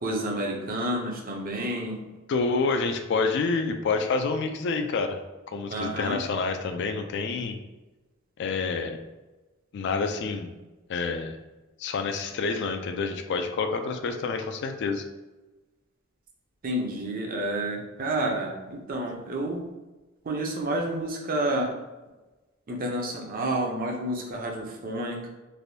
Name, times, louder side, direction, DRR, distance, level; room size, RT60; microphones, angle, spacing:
voice 1, 0.0-2.0 5.7-6.2 16.6-19.6 20.2-21.7 22.7-25.3, right 1 dB, 45° right, 0 dB, 0.5 m, -29 dB
voice 2, 2.3-5.2 5.5-7.5 8.4-9.0 9.7-10.5 10.9-11.4 11.8-15.0, left 4 dB, 55° left, 6 dB, 0.3 m, -28 dB
3.3 x 2.5 x 2.6 m, 1.1 s
head